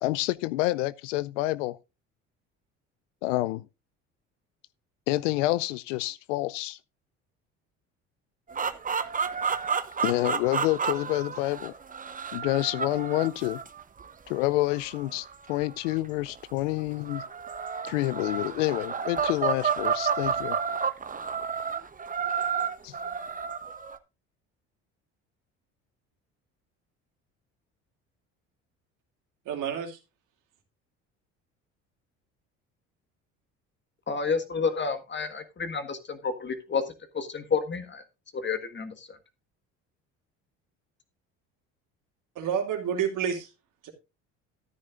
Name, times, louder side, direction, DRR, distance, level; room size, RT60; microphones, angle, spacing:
voice 1, 0.0-1.8 3.2-3.6 5.1-6.8 10.0-11.7 12.3-13.6 14.3-17.2 17.8-20.6 22.8-22.9, left 18 dB, 85° left, 0.5 m, -28 dB
sound 1, 8.5-16.3 17.0-24.0, right 6 dB, 25° right, 0.9 m, -31 dB
voice 2, 29.4-30.0 42.3-43.5 43.8-43.9, right 8 dB, 60° right, 2.7 m, -29 dB
voice 3, 34.1-36.8 37.1-38.0 38.4-39.2, left 5 dB, 30° left, 1.7 m, -30 dB
13.5 x 9.7 x 2.5 m
hypercardioid pair, 65°, 36 cm